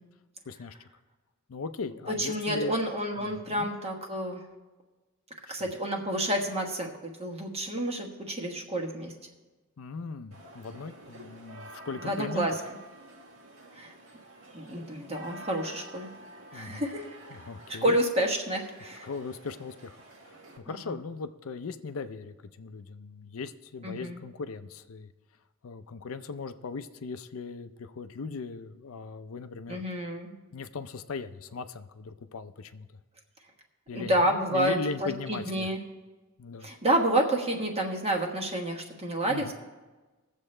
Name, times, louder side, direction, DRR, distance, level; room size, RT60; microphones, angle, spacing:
voice 1, 0.5-0.9 1.5-2.8 3.2-3.7 5.6-5.7 9.8-12.5 16.5-16.8 17.3-18.0 19.0-20.0 20.3-25.1 25.6-29.8 30.5-32.9 33.9-35.7 36.4-36.7 39.3-39.5, left 4 dB, 75° left, 10 dB, 0.5 m, -38 dB
voice 2, 2.2-4.4 5.5-6.9 7.2-9.1 12.0-12.5 13.7-13.9 14.5-16.1 16.5-17.1 17.7-19.1 20.7-20.8 23.8-24.2 29.7-30.3 33.9-35.8 36.6-39.5, right 1 dB, 30° right, 1 dB, 1.4 m, -29 dB
sound 1, 10.3-20.6, right 2 dB, 75° right, 1.7 m, -49 dB
19.5 x 7.4 x 3.2 m, 1.2 s
head